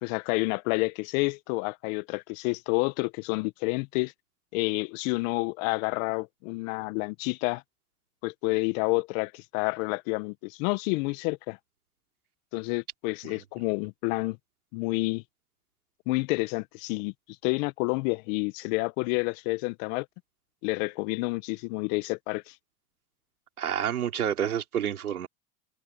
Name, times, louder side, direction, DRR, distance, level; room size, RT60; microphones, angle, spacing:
voice 1, 0.0-4.1 4.5-7.6 8.2-11.6 12.5-14.4 14.7-15.2 16.1-17.1 17.4-20.1 20.6-22.5, left 27 dB, 65° left, 1.7 m, -29 dB
voice 2, 23.6-25.3, right 9 dB, 90° right, 3.8 m, -29 dB
hypercardioid pair, 80°, 43 cm